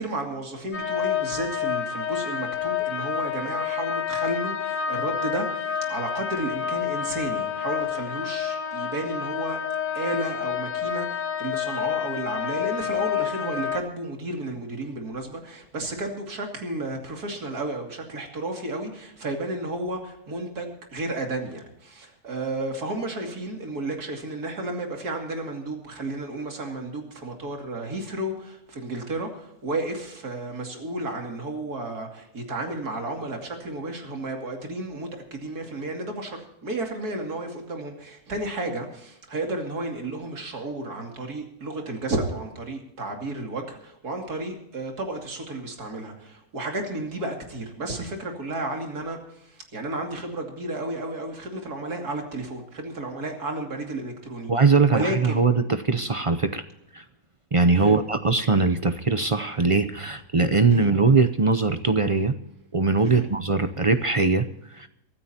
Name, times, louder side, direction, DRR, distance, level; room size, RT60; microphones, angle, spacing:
voice 1, 0.0-9.6 9.9-54.5 54.9-55.4 57.7-58.0 60.7-60.9 63.0-63.3, right 2 dB, 90° right, 2 dB, 3.1 m, -32 dB
sound 1, 0.7-13.8, left 8 dB, 60° left, 1.8 m, -29 dB
voice 2, 54.5-56.6 56.9-57.0 57.5-62.3 62.7-64.5 64.7-64.9, right 4 dB, 45° right, 10 dB, 0.4 m, -21 dB
24.0 x 13.0 x 2.9 m, 0.81 s
omnidirectional pair, 1.6 m